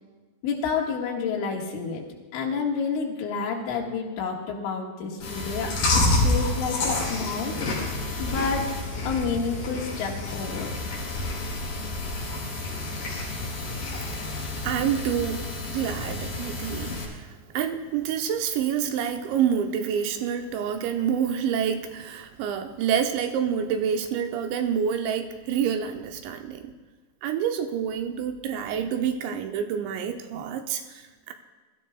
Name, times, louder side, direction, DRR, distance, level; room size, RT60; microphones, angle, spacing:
voice 1, 0.4-2.1 2.3-7.5 8.2-8.7 9.1-10.7, left 5 dB, 90° left, 0 dB, 4.2 m, -29 dB
Chewing mastication, 5.2-17.0, left 2 dB, 50° left, 4.7 m, -29 dB
voice 2, 13.9-14.3 14.6-26.7 27.2-31.3, right 8 dB, 80° right, 5 dB, 2.8 m, -28 dB
23.0 x 13.5 x 2.3 m, 1.3 s
omnidirectional pair, 5.5 m